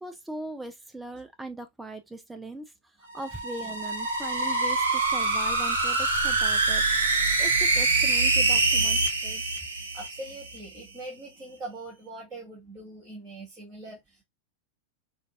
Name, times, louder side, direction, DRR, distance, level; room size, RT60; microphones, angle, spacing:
voice 1, 0.0-2.6 3.1-6.9 7.4-9.4, right 2 dB, 10° right, 0.4 m, -40 dB
sound 1, 3.1-10.6, right 3 dB, 70° right, 0.8 m, -25 dB
voice 2, 9.9-14.2, right 2 dB, 25° right, 1.8 m, -42 dB
5.0 x 2.3 x 2.5 m
figure-of-eight pair, 90°, 0 cm